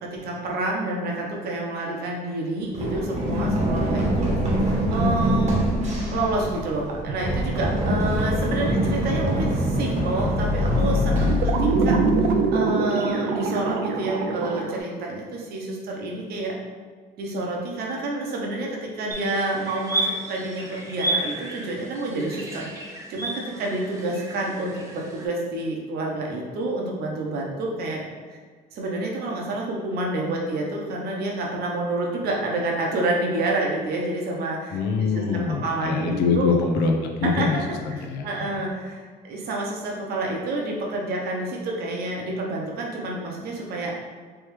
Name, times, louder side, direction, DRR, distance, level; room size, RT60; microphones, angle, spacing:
voice 1, 0.0-4.3 4.6-5.6 6.1-16.5 17.2-22.7 23.1-28.0 28.3-28.4 28.7-36.5 37.2-37.5 38.2-43.9, right 2 dB, 70° right, -1 dB, 0.9 m, -28 dB
Run, 2.7-12.5, equal, 40° right, 1.0 m, -24 dB
sound 1, 6.2-14.8, right 4 dB, 85° right, 0.4 m, -26 dB
sound 2, 19.1-25.3, right 1 dB, 20° right, 0.8 m, -32 dB
voice 2, 34.7-38.5, left 4 dB, 80° left, 2 dB, 0.6 m, -24 dB
3.5 x 3.1 x 3.1 m, 1.5 s
cardioid pair, 110°, 17 cm